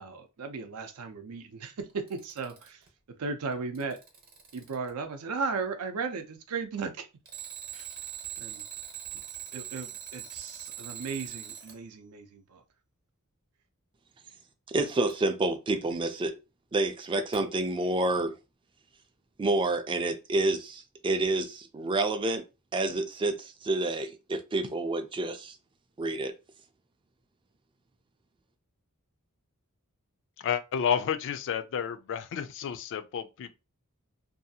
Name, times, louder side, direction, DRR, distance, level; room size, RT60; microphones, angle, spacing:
voice 1, 0.0-4.0 4.5-7.1 7.7-7.9 8.4-8.6 9.1-9.2 9.5-12.6, right 4 dB, 80° right, 0.5 m, -36 dB
Alarm, 1.9-2.9 3.5-4.9 7.2-11.8 15.1-15.2 17.3-17.4, right 9 dB, 40° right, 0.8 m, -42 dB
voice 2, 14.7-16.4 16.7-18.3 19.4-22.4 22.7-25.6 26.0-26.3, right 2 dB, 20° right, 0.3 m, -28 dB
voice 3, 30.4-33.6, left 8 dB, 55° left, 0.3 m, -31 dB
2.6 x 2.3 x 2.7 m
head